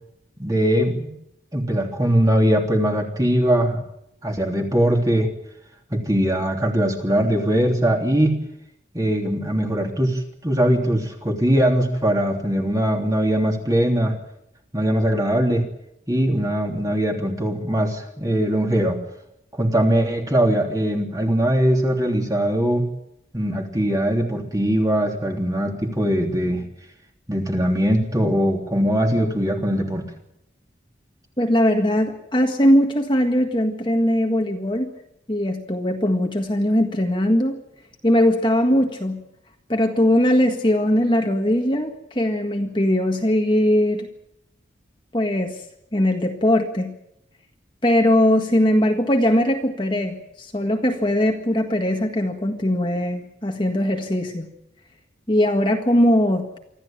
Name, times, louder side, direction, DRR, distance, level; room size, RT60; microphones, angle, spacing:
voice 1, 0.4-1.1 1.5-3.8 4.2-5.3 5.9-8.3 8.9-14.1 14.7-15.6 16.1-19.0 19.5-22.9 23.3-26.6 27.3-30.0, equal, 20° right, 2 dB, 3.3 m, -21 dB
voice 2, 31.4-34.9 35.3-37.6 38.0-39.2 39.7-44.1 45.1-45.6 45.9-46.9 47.8-54.5 55.3-56.6, left 1 dB, 25° left, 3 dB, 1.7 m, -20 dB
25.0 x 14.0 x 8.9 m, 0.81 s
head